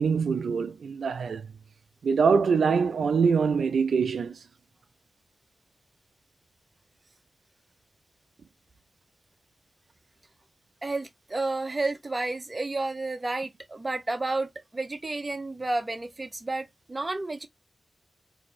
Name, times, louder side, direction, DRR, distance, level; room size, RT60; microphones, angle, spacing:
voice 1, 0.0-1.5 2.0-4.4, right 5 dB, 85° right, 0.4 m, -24 dB
voice 2, 10.8-17.5, right 2 dB, 25° right, 0.7 m, -31 dB
4.1 x 2.7 x 3.1 m
wide cardioid pair, 155°, 0 cm